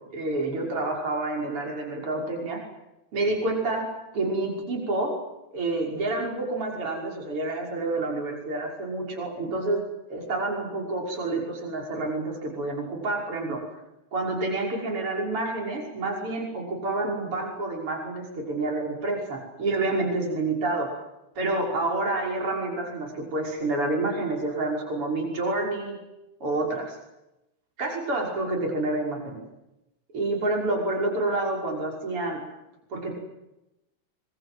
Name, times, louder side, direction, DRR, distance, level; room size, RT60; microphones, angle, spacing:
voice 1, 0.1-2.6 3.1-3.9 4.1-5.2 5.5-9.8 10.1-13.6 14.1-20.9 21.3-26.0 26.4-27.0 27.8-29.4 30.1-32.5 32.9-33.2, right 2 dB, 45° right, 1 dB, 6.7 m, -28 dB
25.5 x 24.5 x 7.8 m, 0.91 s
omnidirectional pair, 3.5 m